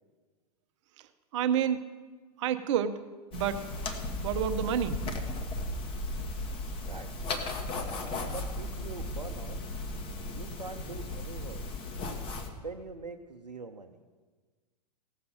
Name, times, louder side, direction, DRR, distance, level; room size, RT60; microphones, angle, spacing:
voice 1, 1.3-1.8 2.4-3.0 3.3-3.6 4.2-5.1, right 9 dB, 45° right, 10 dB, 0.8 m, -29 dB
sound 1, 3.3-12.5, left 2 dB, 25° left, 1.2 m, -36 dB
voice 2, 7.7-9.6 10.3-11.6 12.6-14.0, right 4 dB, 85° right, 5 dB, 0.6 m, -43 dB
17.0 x 6.7 x 5.5 m, 1.4 s
figure-of-eight pair, 95°, 21 cm